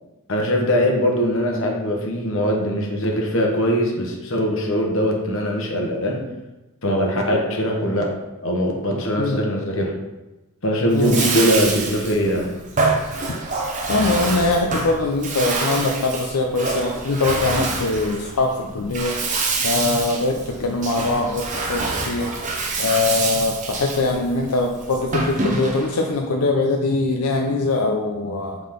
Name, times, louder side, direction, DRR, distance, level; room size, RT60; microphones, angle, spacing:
voice 1, 0.3-6.2 6.8-8.1 8.4-9.9 10.6-12.5, equal, 60° left, 0 dB, 1.2 m, -21 dB
voice 2, 10.9-11.3 13.5-13.6 13.9-19.1 19.6-22.3 22.8-28.6, left 3 dB, 90° left, 2 dB, 0.6 m, -22 dB
Bathtub (filling or washing), 10.9-26.0, right 3 dB, 35° right, 0.7 m, -26 dB
5.7 x 3.8 x 5.1 m, 1.1 s
head